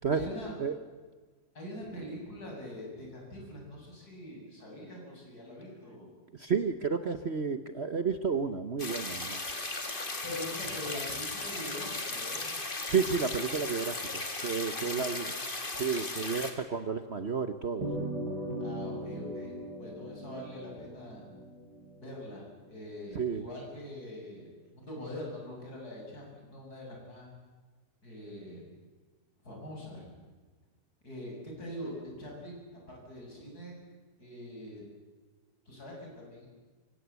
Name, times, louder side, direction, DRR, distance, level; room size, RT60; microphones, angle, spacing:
voice 1, 0.1-0.5 1.5-6.2 10.2-12.5 14.7-15.0 18.6-21.3 22.0-27.3 28.0-28.7 29.4-30.2 31.0-33.8 34.2-34.8 35.7-36.5, left 1 dB, 60° left, -1 dB, 8.1 m, -43 dB
voice 2, 6.4-9.4 12.9-15.3 15.8-18.1 23.1-23.4, right 5 dB, 45° right, 10 dB, 1.1 m, -31 dB
sound 1, 8.8-16.5, left 2 dB, 30° left, 2.5 m, -36 dB
sound 2, 17.8-22.4, equal, 70° right, 7.0 m, -39 dB
25.5 x 24.5 x 8.2 m, 1.4 s
omnidirectional pair, 1.8 m